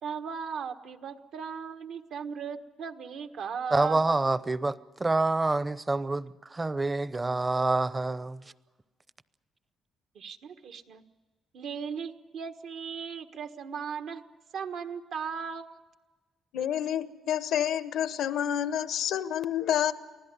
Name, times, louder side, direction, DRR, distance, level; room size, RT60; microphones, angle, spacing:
voice 1, 0.0-4.2 10.1-11.0 11.5-14.2 14.5-15.8, right 6 dB, 75° right, 1.3 m, -37 dB
voice 2, 3.7-8.4, right 2 dB, 20° right, 0.7 m, -27 dB
voice 3, 16.5-19.9, left 10 dB, 80° left, 1.0 m, -28 dB
24.5 x 16.0 x 9.5 m
cardioid pair, 90°, 0 cm